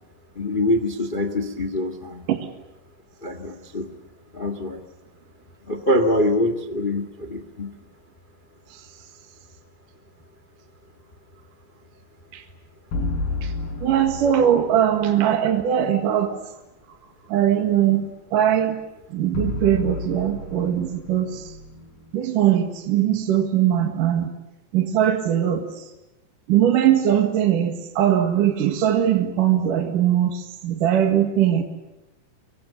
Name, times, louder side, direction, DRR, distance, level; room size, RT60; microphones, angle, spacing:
voice 1, 0.3-2.3 3.2-3.9 4.3-4.8 5.6-7.7, left 1 dB, 80° left, 9 dB, 0.4 m, -24 dB
sound 1, 12.9-15.1 19.3-22.6, left 2 dB, 60° left, 5.9 m, -31 dB
voice 2, 13.8-16.4 17.3-18.0 18.3-18.8 19.1-21.4 22.1-24.3 24.7-25.7 26.5-31.6, right 10 dB, 60° right, 5 dB, 3.1 m, -20 dB
25.5 x 23.0 x 8.3 m, 0.96 s
omnidirectional pair, 4.7 m